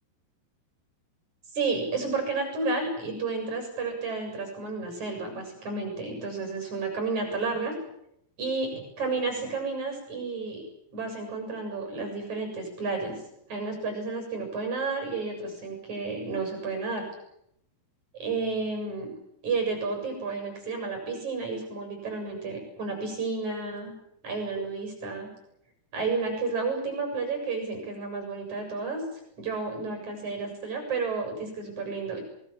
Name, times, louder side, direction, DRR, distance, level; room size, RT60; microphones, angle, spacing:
voice 1, 1.5-7.7 8.4-10.6 10.9-13.2 13.5-17.0 18.2-19.1 19.4-23.9 24.2-25.3 25.9-29.0 29.4-32.2, right 4 dB, 35° right, 4 dB, 8.0 m, -31 dB
26.5 x 21.5 x 7.5 m, 0.74 s
omnidirectional pair, 6.0 m